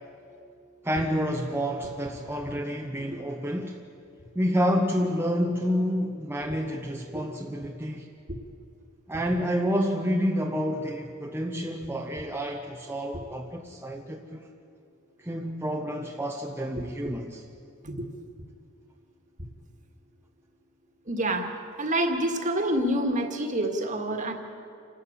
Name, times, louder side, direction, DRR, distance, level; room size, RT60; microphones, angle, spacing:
voice 1, 0.8-3.8 4.3-8.1 9.1-14.4 15.2-17.4, equal, 10° right, 0 dB, 0.9 m, -29 dB
voice 2, 21.1-21.5 21.8-24.3, right 1 dB, 35° right, 5 dB, 1.9 m, -27 dB
28.0 x 12.5 x 8.6 m, 2.5 s
head